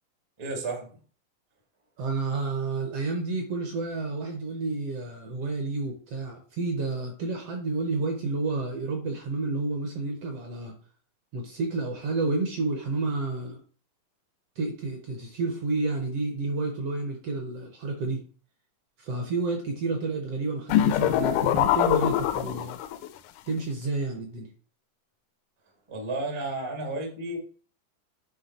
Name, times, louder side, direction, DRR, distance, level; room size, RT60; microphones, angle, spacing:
voice 1, 0.4-0.9 25.9-27.4, right 2 dB, 50° right, 1 dB, 0.3 m, -32 dB
voice 2, 2.0-10.8 11.3-13.6 14.6-18.3 19.0-22.8 23.5-24.5, right 3 dB, 65° right, 3 dB, 1.5 m, -30 dB
sound 1, 20.7-23.1, left 12 dB, 80° left, 1.9 m, -23 dB
9.2 x 3.2 x 4.2 m, 0.41 s
omnidirectional pair, 3.8 m